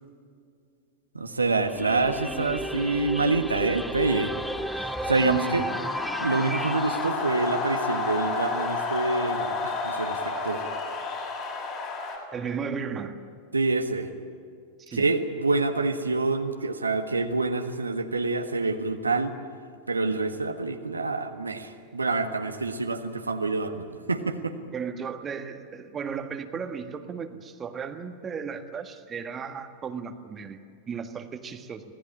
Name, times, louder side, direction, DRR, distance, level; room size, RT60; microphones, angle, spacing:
voice 1, 1.1-4.3 4.8-5.6 6.2-10.7 13.5-14.1 14.9-19.3 19.9-24.5, right 3 dB, 80° right, 6 dB, 1.5 m, -27 dB
sound 1, 1.6-7.1, equal, ahead, 0.8 m, -33 dB
sound 2, 2.3-12.2, left 4 dB, 35° left, 6.7 m, -32 dB
voice 2, 5.2-5.9 12.3-13.2 14.8-15.1 24.7-30.6 30.9-31.8, right 6 dB, 20° right, 7 dB, 1.7 m, -35 dB
26.5 x 18.5 x 8.8 m, 2.3 s
figure-of-eight pair, 90°, 0 cm